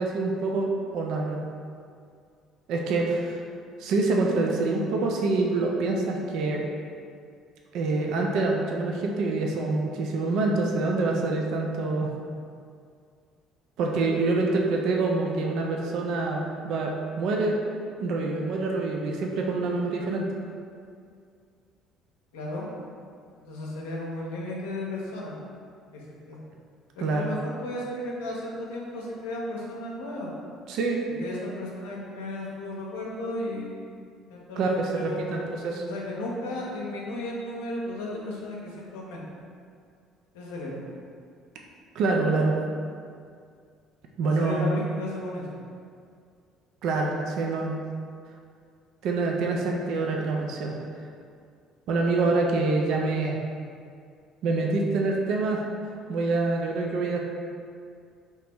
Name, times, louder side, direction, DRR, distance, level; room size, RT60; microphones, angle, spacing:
voice 1, 0.0-1.5 2.7-3.4 3.8-6.6 7.7-12.1 13.8-17.6 18.0-20.2 27.0-27.3 30.7-31.0 34.6-35.8 41.9-42.6 44.2-44.7 46.8-47.7 49.0-50.8 51.9-53.4 54.4-55.6 56.1-57.2, right 3 dB, 65° right, 0 dB, 0.4 m, -26 dB
voice 2, 22.3-22.7 23.5-25.4 25.9-26.0 26.3-26.4 27.0-30.3 31.2-33.9 34.3-35.5 35.8-39.2 40.3-40.9 44.2-45.5, left 1 dB, 80° left, -3 dB, 0.6 m, -34 dB
2.9 x 2.8 x 3.5 m, 2.2 s
hypercardioid pair, 60°, 0 cm